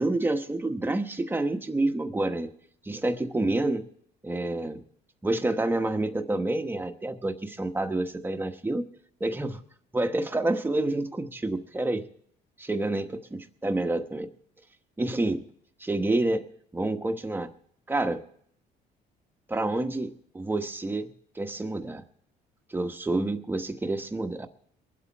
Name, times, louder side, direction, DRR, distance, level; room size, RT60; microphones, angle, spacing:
voice 1, 0.0-2.5 2.8-3.9 4.2-4.8 5.2-8.9 9.2-9.6 9.9-12.1 12.6-14.3 15.0-15.4 15.8-16.4 16.7-17.5 17.9-18.2 19.5-21.1 21.3-22.0 22.7-24.5, right 2 dB, 10° right, 6 dB, 1.2 m, -28 dB
23.0 x 8.3 x 4.6 m, 0.64 s
cardioid pair, 110°, 17 cm